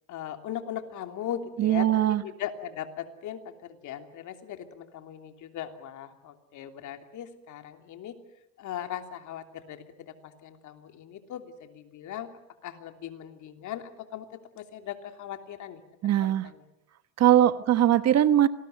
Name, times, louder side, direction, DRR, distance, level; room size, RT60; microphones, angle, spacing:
voice 1, 0.1-8.2 8.6-12.3 12.6-14.3 14.5-16.6, left 10 dB, 50° left, 6 dB, 3.1 m, -39 dB
voice 2, 1.6-2.2 16.0-16.5 17.2-18.5, right 11 dB, 45° right, 13 dB, 1.3 m, -21 dB
26.5 x 20.0 x 9.3 m, 0.88 s
supercardioid pair, 105°, 37 cm